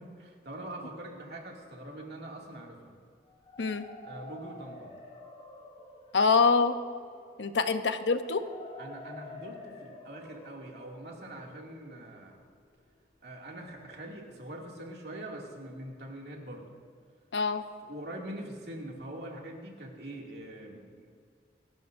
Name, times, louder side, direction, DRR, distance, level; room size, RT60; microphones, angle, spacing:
voice 1, 0.0-2.9 4.0-4.9 8.8-12.4 13.2-16.7 17.8-21.1, right 1 dB, 65° right, -1 dB, 2.4 m, -43 dB
sound 1, 3.3-13.1, left 2 dB, 30° left, 3.2 m, -50 dB
voice 2, 6.1-6.8 7.4-8.4 17.3-17.6, left 4 dB, 90° left, 9 dB, 0.8 m, -25 dB
27.5 x 12.5 x 2.6 m, 2.1 s
head